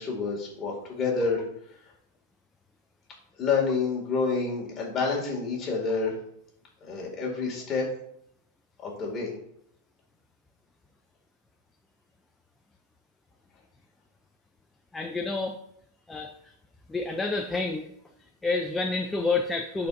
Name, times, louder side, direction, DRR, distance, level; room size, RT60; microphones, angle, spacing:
voice 1, 0.0-1.4 3.4-6.2 6.8-7.8 8.8-9.3, left 4 dB, 25° left, -2 dB, 2.1 m, -28 dB
voice 2, 14.9-15.6 16.1-16.3 16.9-17.9 18.4-19.9, left 3 dB, 10° left, 4 dB, 0.4 m, -28 dB
11.0 x 4.4 x 2.6 m, 0.72 s
supercardioid pair, 150°, 0 cm